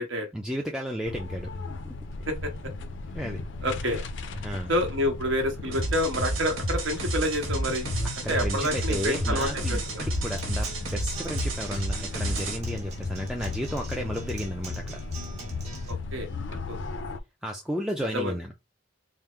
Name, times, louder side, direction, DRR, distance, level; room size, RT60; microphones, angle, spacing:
voice 1, 0.3-1.5 3.1-3.5 4.4-4.7 8.2-15.0 17.4-18.5, equal, 5° right, 0.4 m, -33 dB
sound 1, 1.0-17.2, left 3 dB, 65° left, 0.5 m, -36 dB
voice 2, 3.6-4.0 4.7-7.9 8.3-9.8 15.9-16.8 18.1-18.3, equal, 75° right, 1.2 m, -28 dB
sound 2, 5.7-12.6, right 1 dB, 90° right, 1.3 m, -31 dB
Acoustic guitar, 7.9-15.9, right 3 dB, 35° right, 1.2 m, -44 dB
3.6 x 2.1 x 4.4 m
head